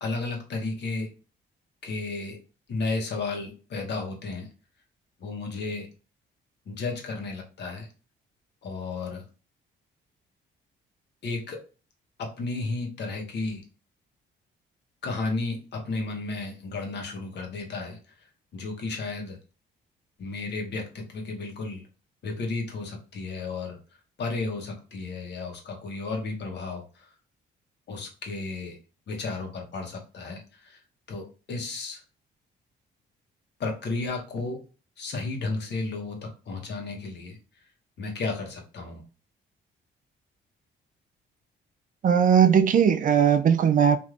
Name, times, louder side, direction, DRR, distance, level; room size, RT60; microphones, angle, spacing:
voice 1, 0.0-1.1 1.8-2.4 2.7-4.5 5.2-5.9 6.7-7.9 8.6-9.2 11.2-11.6 12.2-13.6 15.0-18.0 18.5-19.4 20.2-21.8 22.2-23.8 24.2-27.1 27.9-28.8 29.1-30.8 31.1-32.0 33.6-34.6 35.0-37.4 38.0-39.0, left 3 dB, 60° left, 1.0 m, -33 dB
voice 2, 42.0-44.0, right 8 dB, 45° right, 0.4 m, -19 dB
3.2 x 2.6 x 2.5 m
cardioid pair, 90°, 20 cm